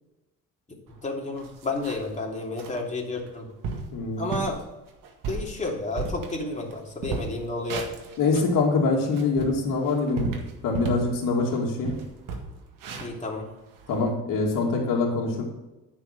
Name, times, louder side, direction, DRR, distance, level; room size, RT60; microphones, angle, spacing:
sound 1, 0.9-1.0 1.4-2.2 2.6-2.8 3.3-3.4 3.6-3.9 4.3-4.6 5.0-6.7 7.0-8.6 9.0-11.1 11.5-11.6 11.8-14.0, right 4 dB, 75° right, 1.9 m, -34 dB
voice 1, 1.0-3.5 4.2-4.6 5.3-7.8 13.0-13.5 13.9-14.1, left 2 dB, 20° left, -1 dB, 3.0 m, -31 dB
voice 2, 3.9-4.2 8.2-10.3 10.6-11.9 13.9-15.4, left 3 dB, 75° left, -2 dB, 2.4 m, -24 dB
9.8 x 6.2 x 6.7 m, 1.0 s
cardioid pair, 85°, 33 cm